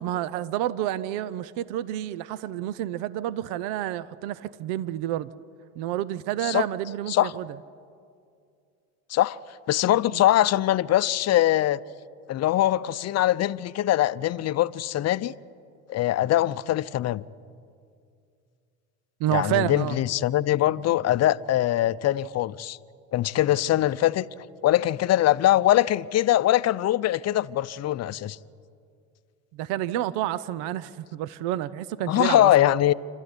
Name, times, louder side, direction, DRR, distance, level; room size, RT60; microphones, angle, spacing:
voice 1, 0.0-5.3 5.7-7.5 10.1-10.2 19.2-20.0 29.5-32.5, right 13 dB, 70° right, 0.8 m, -29 dB
voice 2, 9.7-11.8 12.3-15.3 15.9-17.2 19.3-22.8 23.1-24.3 24.6-28.4 32.1-32.9, left 13 dB, 40° left, 0.7 m, -22 dB
27.5 x 13.0 x 9.8 m
supercardioid pair, 90°, 40 cm